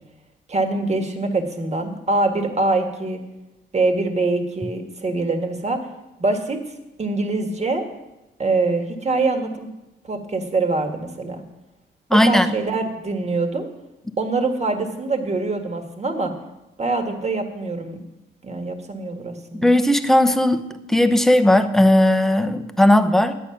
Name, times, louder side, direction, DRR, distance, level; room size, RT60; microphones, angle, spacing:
voice 1, 0.5-3.2 3.7-5.8 6.2-6.6 7.0-7.8 8.4-9.7 10.0-11.4 12.2-13.7 14.2-16.3 16.8-18.0 18.4-19.7, right 3 dB, 35° right, 5 dB, 1.6 m, -24 dB
voice 2, 12.1-12.5 19.6-20.6 20.9-23.4, left 1 dB, ahead, 8 dB, 0.8 m, -16 dB
10.5 x 8.4 x 5.8 m, 0.98 s
cardioid pair, 90°, 20 cm